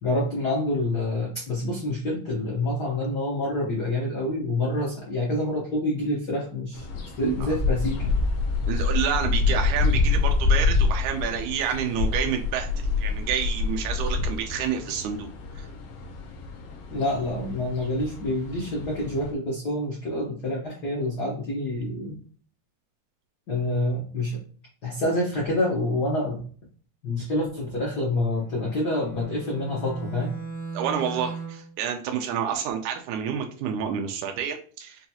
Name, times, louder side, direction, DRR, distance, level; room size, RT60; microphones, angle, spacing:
voice 1, 0.0-6.9 7.2-8.1 16.9-22.2 23.5-24.4 24.8-26.4 27.0-30.3, left 1 dB, 90° left, -4 dB, 0.8 m, -27 dB
sound 1, 6.7-19.3, left 4 dB, 70° left, 1.5 m, -27 dB
voice 2, 7.2-7.5 8.7-12.7 13.0-15.3 15.6-15.7 30.7-35.1, right 8 dB, 90° right, 4 dB, 2.0 m, -29 dB
Bowed string instrument, 28.3-31.7, right 4 dB, 55° left, 0.4 m, -37 dB
5.8 x 2.3 x 2.8 m, 0.43 s
omnidirectional pair, 3.4 m